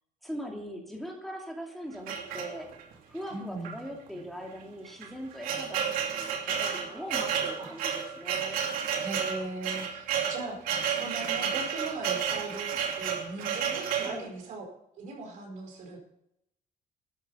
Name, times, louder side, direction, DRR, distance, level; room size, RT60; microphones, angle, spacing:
voice 1, 0.2-2.7 3.1-8.6 14.0-14.3, equal, ahead, 0 dB, 2.7 m, -41 dB
sound 1, 2.1-2.9 3.6-3.8 4.1-4.2 4.9-14.2, right 7 dB, 80° right, 2.6 m, -31 dB
voice 2, 3.3-3.8 7.6-7.7 9.0-12.7 13.0-14.6 15.0-16.0, right 3 dB, 65° right, 2 dB, 4.9 m, -39 dB
13.5 x 11.0 x 5.6 m, 0.79 s
cardioid pair, 125°, 14 cm